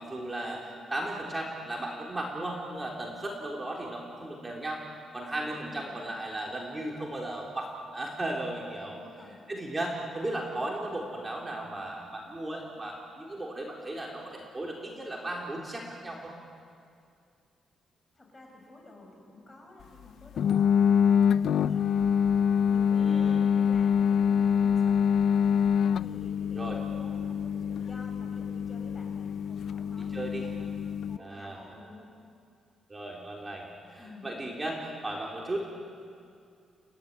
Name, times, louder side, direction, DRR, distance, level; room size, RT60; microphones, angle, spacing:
voice 1, 0.0-4.8 5.1-9.0 9.5-16.3 22.9-23.4 26.6-26.8 30.1-30.4 31.2-31.6 32.9-35.6, right 1 dB, 20° right, -2 dB, 3.9 m, -36 dB
voice 2, 5.3-6.1 8.8-9.4 18.1-22.1 22.7-25.5 26.0-30.7 31.0-32.1 34.0-34.3, left 2 dB, 25° left, 1 dB, 7.2 m, -50 dB
sound 1, 20.4-31.2, left 7 dB, 70° left, 0.6 m, -25 dB
30.0 x 16.0 x 9.9 m, 2.4 s
cardioid pair, 105°, 0 cm